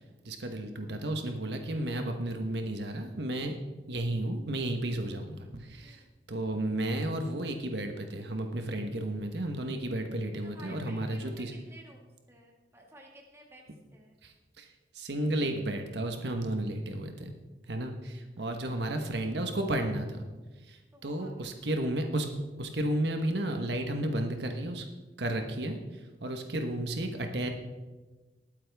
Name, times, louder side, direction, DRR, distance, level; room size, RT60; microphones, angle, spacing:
voice 1, 0.2-3.6 3.9-6.0 6.3-11.5 14.2-14.7 14.9-17.3 17.7-20.3 20.7-22.3 22.6-24.9 25.2-25.8 26.2-27.5, right 1 dB, 75° right, 5 dB, 1.2 m, -33 dB
voice 2, 10.4-11.4 11.7-13.6 13.9-14.1 18.4-18.8 20.9-21.6, right 1 dB, 15° right, -1 dB, 1.9 m, -54 dB
20.0 x 8.7 x 3.5 m, 1.2 s
head